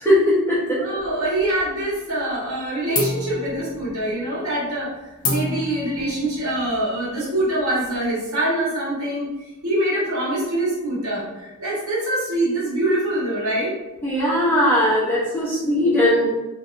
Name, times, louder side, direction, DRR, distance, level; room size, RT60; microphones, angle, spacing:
voice 1, 0.0-0.8 14.0-16.3, left 1 dB, 10° left, -9 dB, 0.9 m, -19 dB
voice 2, 0.8-4.9 5.3-9.3 9.6-13.7, right 1 dB, 80° right, -7 dB, 1.3 m, -24 dB
sound 1, 1.0-1.9 2.2-2.6 2.9-8.1, left 3 dB, 40° left, 0.5 m, -31 dB
2.9 x 2.8 x 2.5 m, 1.1 s
head